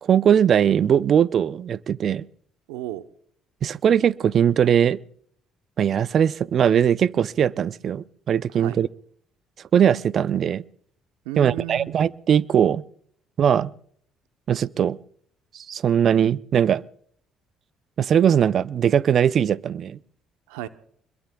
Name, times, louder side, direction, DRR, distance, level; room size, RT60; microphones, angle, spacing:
voice 1, 0.0-2.2 3.6-5.0 5.8-8.9 9.7-10.6 11.4-12.8 13.4-13.7 14.5-15.0 15.5-16.8 18.0-20.0, right 8 dB, 55° right, 0.5 m, -20 dB
voice 2, 2.7-3.0 8.5-8.8 11.2-12.0 20.5-20.7, right 14 dB, 85° right, 0.8 m, -34 dB
25.0 x 22.0 x 2.3 m
hypercardioid pair, 60°, 0 cm